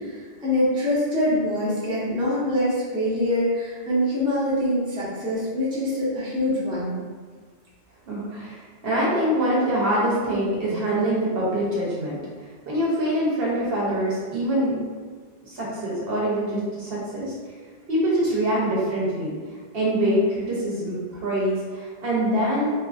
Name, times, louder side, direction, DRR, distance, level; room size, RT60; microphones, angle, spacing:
voice 1, 0.0-6.9, left 1 dB, 5° right, -9 dB, 0.5 m, -24 dB
voice 2, 8.1-12.2 12.7-14.7 15.4-17.3 17.9-19.3 19.7-22.7, right 1 dB, 60° right, -6 dB, 0.8 m, -24 dB
2.8 x 2.3 x 2.3 m, 1.6 s
omnidirectional pair, 1.2 m